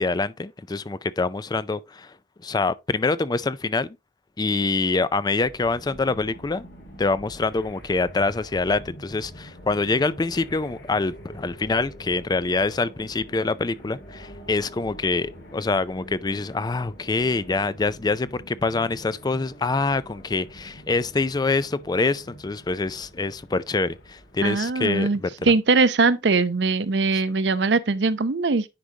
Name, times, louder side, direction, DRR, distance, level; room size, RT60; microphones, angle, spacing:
voice 1, 0.0-2.1 2.4-4.0 4.4-6.6 7.0-25.5, left 3 dB, 25° left, 0.4 m, -25 dB
sound 1, 5.4-24.6, equal, 85° left, 2.9 m, -45 dB
voice 2, 24.4-25.2 25.5-28.7, right 4 dB, 80° right, 0.7 m, -21 dB
9.9 x 5.1 x 2.8 m
head